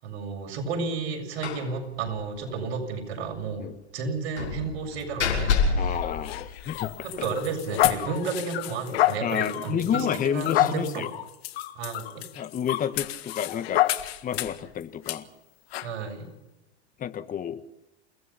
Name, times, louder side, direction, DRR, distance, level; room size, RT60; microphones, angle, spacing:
voice 1, 0.0-3.7 3.9-6.0 7.0-11.0 11.8-12.2 15.8-16.2, right 5 dB, 65° right, 3 dB, 7.5 m, -32 dB
Slam, 1.4-1.7 2.0-2.1 2.5-2.6 4.4-7.0, left 5 dB, 85° left, 6.2 m, -27 dB
voice 2, 5.7-6.9 7.2-7.3 9.2-11.1 12.3-13.8 14.2-15.3 17.0-17.6, left 8 dB, 25° left, 11 dB, 1.6 m, -30 dB
sound 1, 5.9-14.6 15.1-15.2 15.7-15.9, left 16 dB, 65° left, 1.7 m, -28 dB
29.0 x 18.0 x 5.8 m, 0.93 s
hypercardioid pair, 120°, 33 cm